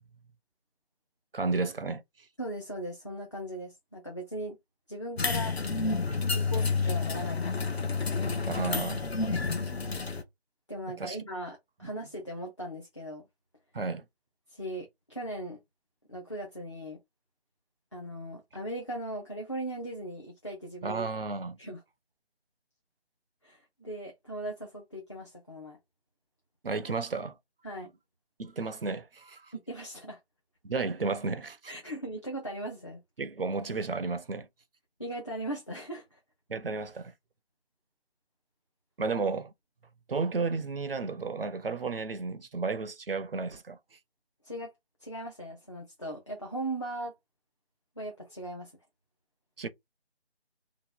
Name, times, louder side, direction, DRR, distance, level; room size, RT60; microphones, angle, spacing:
voice 1, 1.3-2.0 8.4-9.0 11.0-11.2 13.7-14.0 20.8-21.6 26.6-27.4 28.4-29.5 30.6-31.7 33.2-34.5 36.5-37.1 39.0-39.5 40.1-43.8 49.6-49.7, right 4 dB, 60° right, 0.6 m, -32 dB
voice 2, 2.4-4.6 4.9-5.6 6.3-7.8 10.7-13.3 14.5-15.6 16.1-17.0 17.9-21.0 21.6-21.8 23.4-25.8 27.6-27.9 29.5-30.2 31.7-33.0 35.0-36.2 44.4-44.7 45.0-47.1 48.0-48.7, right 1 dB, 30° left, 0.6 m, -38 dB
sound 1, 5.2-10.2, left 4 dB, 70° left, 0.8 m, -29 dB
2.9 x 2.3 x 3.7 m
figure-of-eight pair, 160°, 32 cm